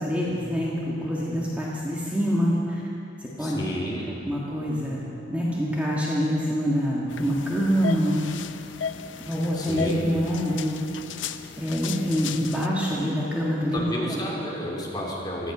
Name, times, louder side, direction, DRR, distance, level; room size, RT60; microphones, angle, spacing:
voice 1, 0.0-2.8 3.2-3.6 4.2-8.3 9.3-10.8 11.6-13.8 14.1-14.2, equal, 10° right, -6 dB, 1.7 m, -26 dB
voice 2, 3.4-4.2 9.5-10.0 13.7-15.5, equal, 25° left, -3 dB, 3.0 m, -31 dB
sound 1, 7.1-12.7, left 7 dB, 80° left, 0.6 m, -36 dB
17.0 x 13.0 x 6.1 m, 2.8 s
head